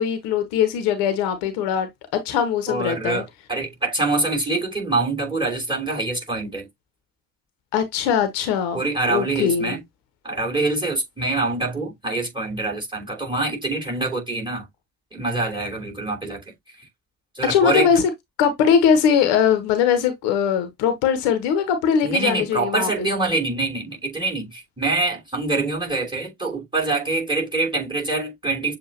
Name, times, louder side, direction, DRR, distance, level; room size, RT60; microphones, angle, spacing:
voice 1, 0.0-3.2 7.7-8.8 9.1-9.8 17.4-18.1 18.4-23.1, left 7 dB, 60° left, 0.9 m, -21 dB
voice 2, 2.7-6.7 8.7-9.8 10.2-14.7 15.1-16.4 17.3-18.0 22.0-28.8, right 2 dB, 10° right, 3.0 m, -25 dB
7.2 x 2.4 x 2.8 m
figure-of-eight pair, 45°, 48 cm